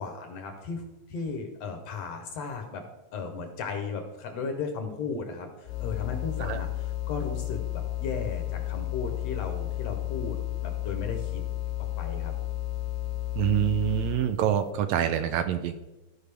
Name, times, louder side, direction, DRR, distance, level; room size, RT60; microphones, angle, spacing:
voice 1, 0.0-2.8 3.1-11.4 11.8-12.3, left 5 dB, 65° left, 5 dB, 1.8 m, -36 dB
sound 1, 5.7-14.4, left 15 dB, 90° left, 2.0 m, -32 dB
voice 2, 13.4-15.7, right 10 dB, 80° right, 9 dB, 1.7 m, -26 dB
14.5 x 5.0 x 3.4 m, 1.0 s
omnidirectional pair, 3.4 m